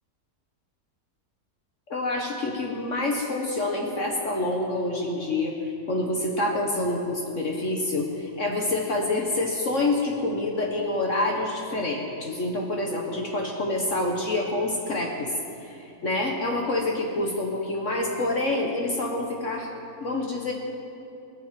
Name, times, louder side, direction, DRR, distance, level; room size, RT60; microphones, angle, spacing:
voice 1, 1.9-5.5 5.9-15.3 15.6-19.7 20.0-20.5, left 2 dB, 55° left, 0 dB, 1.7 m, -27 dB
17.5 x 10.5 x 7.6 m, 2.7 s
omnidirectional pair, 1.6 m